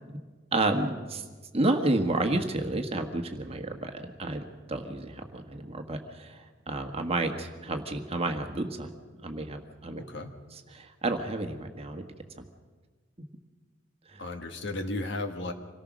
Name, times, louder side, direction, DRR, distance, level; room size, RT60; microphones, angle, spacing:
voice 1, 0.5-1.2 1.5-4.4 4.7-9.0 9.2-10.0 10.7-12.1 12.4-12.5 14.1-14.2, right 2 dB, 30° right, 5 dB, 1.4 m, -30 dB
voice 2, 10.0-10.3 14.2-15.5, left 2 dB, 55° left, 6 dB, 1.7 m, -34 dB
26.0 x 18.0 x 6.2 m, 1.4 s
head